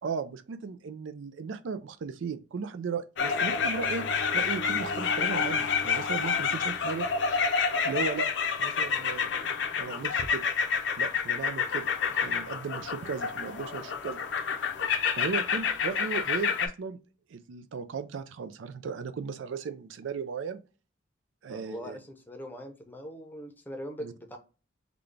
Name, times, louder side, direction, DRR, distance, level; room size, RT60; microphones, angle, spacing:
voice 1, 0.0-4.1 4.3-7.4 7.8-8.3 8.6-9.3 9.8-10.5 11.0-14.2 15.2-17.0 17.3-20.6 21.4-22.0 24.0-24.1, right 5 dB, 80° right, 0.4 m, -36 dB
sound 1, 3.2-16.7, left 6 dB, 70° left, 0.6 m, -29 dB
voice 2, 21.5-24.4, equal, 10° left, 0.7 m, -41 dB
3.9 x 2.3 x 3.2 m
head